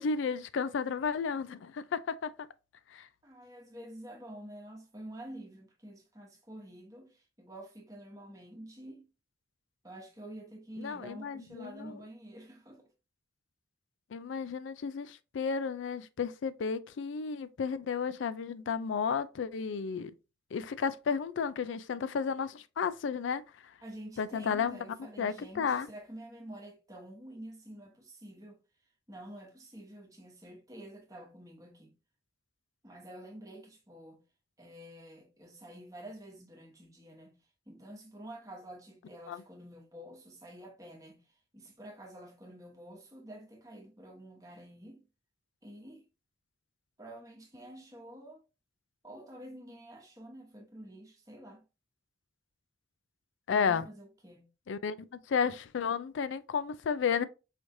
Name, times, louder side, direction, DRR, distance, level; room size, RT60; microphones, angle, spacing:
voice 1, 0.0-2.5 2.9-3.1 10.8-12.0 14.1-20.1 20.5-23.4 24.2-24.8 25.2-25.9 39.3-39.4 53.5-53.9 54.7-55.0 55.3-57.2, left 6 dB, 80° left, 0.4 m, -32 dB
voice 2, 3.2-9.1 9.8-12.9 23.8-28.6 29.1-31.9 32.8-34.2 34.6-37.4 37.7-41.2 41.5-45.0 45.6-46.1 47.0-48.4 49.0-51.6 53.5-54.5, right 1 dB, 20° right, 1.0 m, -48 dB
4.9 x 3.1 x 2.6 m
head